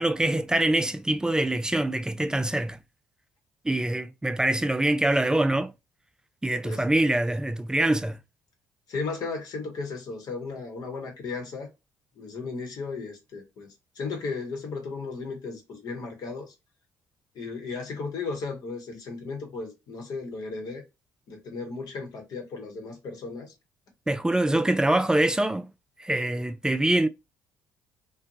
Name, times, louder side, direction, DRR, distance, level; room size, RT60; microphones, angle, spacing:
voice 1, 0.0-2.8 3.6-5.7 6.4-8.2 24.1-25.7 26.0-27.1, right 1 dB, 10° right, 0.3 m, -24 dB
voice 2, 8.9-11.7 12.2-16.5 17.3-20.8 21.3-23.5 24.5-24.6, left 4 dB, 55° left, 1.0 m, -35 dB
2.6 x 2.2 x 2.7 m
hypercardioid pair, 50°, 8 cm